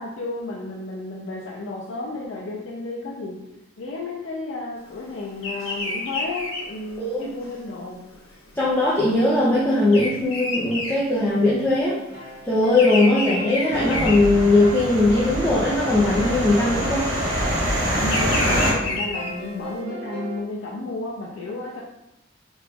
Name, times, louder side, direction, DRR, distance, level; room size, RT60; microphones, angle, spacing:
voice 1, 0.0-3.4 3.8-8.0 18.0-21.8, left 2 dB, 70° left, -3 dB, 0.4 m, -32 dB
Bird vocalization bird call bird song, 5.4-11.8 12.1-14.9 15.4-15.8 16.7-19.7, left 2 dB, 90° left, 0.8 m, -30 dB
voice 2, 8.5-12.0 12.4-17.1, left 2 dB, 10° left, -10 dB, 0.4 m, -19 dB
sound 1, 12.0-20.4, right 3 dB, 45° right, 0.9 m, -39 dB
sound 2, 13.7-18.7, equal, 70° right, 1.4 m, -25 dB
3.0 x 2.3 x 3.3 m, 0.90 s
head